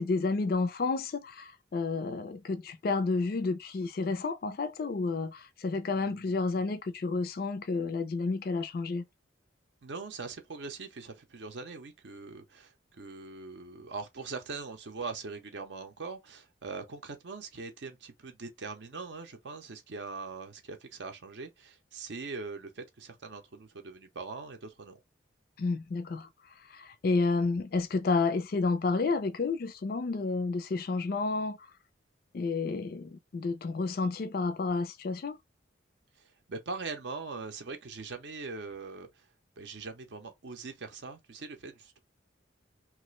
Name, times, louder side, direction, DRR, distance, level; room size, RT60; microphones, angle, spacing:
voice 1, 0.0-9.0 25.6-26.3 26.7-31.6 32.3-35.4, left 3 dB, 50° left, 0.4 m, -30 dB
voice 2, 6.0-6.3 9.8-25.0 36.2-39.3 39.6-42.0, right 4 dB, 65° right, 0.6 m, -42 dB
3.0 x 2.4 x 3.1 m
head